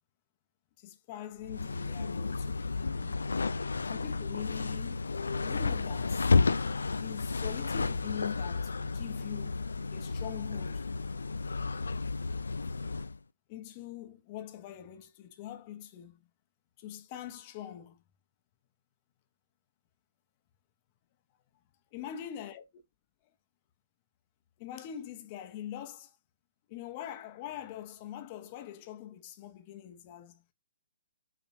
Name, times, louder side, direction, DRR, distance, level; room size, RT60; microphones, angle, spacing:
voice 1, 0.8-3.2 3.9-5.1 5.4-6.2 7.0-9.6 9.9-10.8 13.5-16.3 16.8-18.0 21.9-22.6 24.6-26.2 26.7-30.4, left 10 dB, 35° left, 0.9 m, -43 dB
sound 1, 1.4-13.2, left 4 dB, 80° left, 0.3 m, -32 dB
5.9 x 3.0 x 2.8 m
figure-of-eight pair, 135°, 0 cm